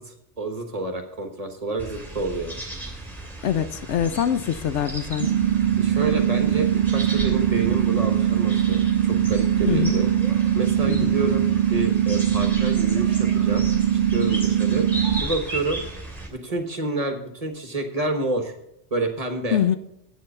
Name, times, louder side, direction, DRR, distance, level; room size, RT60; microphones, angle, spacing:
voice 1, 0.0-2.5 5.8-10.1 10.5-13.6 13.9-14.9 15.2-15.8 16.3-18.5 18.9-19.6, right 2 dB, 30° right, 4 dB, 1.2 m, -29 dB
sound 1, 1.8-16.3, right 1 dB, ahead, 2.8 m, -35 dB
voice 2, 3.4-5.3 9.7-10.0 10.9-11.2 19.5-19.8, left 9 dB, 70° left, 12 dB, 0.9 m, -24 dB
sound 2, 5.2-15.2, right 10 dB, 60° right, 0.6 m, -21 dB
8.4 x 7.6 x 6.9 m, 0.78 s
omnidirectional pair, 1.3 m